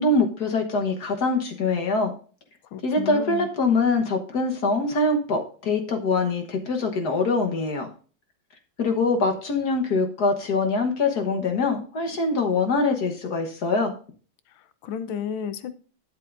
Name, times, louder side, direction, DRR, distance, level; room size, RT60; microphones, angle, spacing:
voice 1, 0.0-2.1 2.8-7.9 8.8-13.9, left 3 dB, 55° left, 4 dB, 1.7 m, -23 dB
voice 2, 2.7-3.5 14.5-15.7, left 8 dB, 80° left, 12 dB, 1.6 m, -32 dB
12.0 x 8.1 x 2.6 m, 0.39 s
omnidirectional pair, 2.2 m